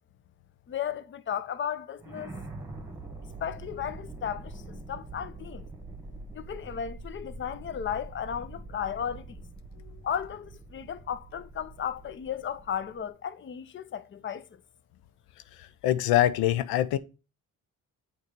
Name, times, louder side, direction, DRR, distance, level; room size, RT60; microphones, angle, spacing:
voice 1, 0.7-2.4 3.4-5.7 6.3-9.4 10.0-14.5, left 8 dB, 35° left, 0.6 m, -35 dB
sound 1, 2.0-13.1, right 2 dB, 10° right, 1.6 m, -44 dB
voice 2, 15.6-17.0, left 13 dB, 90° left, 0.5 m, -24 dB
6.4 x 3.1 x 5.2 m
supercardioid pair, 70°, 36 cm